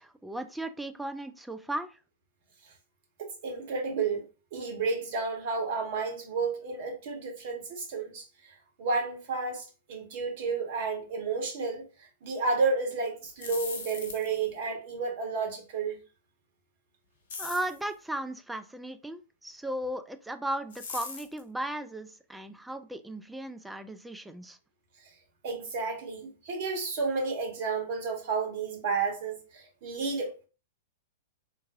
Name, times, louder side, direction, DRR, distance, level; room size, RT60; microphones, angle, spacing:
voice 1, 0.0-2.0 17.4-24.6, right 1 dB, 5° right, 0.3 m, -36 dB
voice 2, 3.2-8.2 8.8-16.0 25.4-30.5, right 4 dB, 50° right, 1.2 m, -31 dB
sound 1, 13.2-14.5 17.3-17.8 20.7-21.4, left 4 dB, 60° left, 1.0 m, -39 dB
3.8 x 2.5 x 2.7 m
figure-of-eight pair, 100°, 0 cm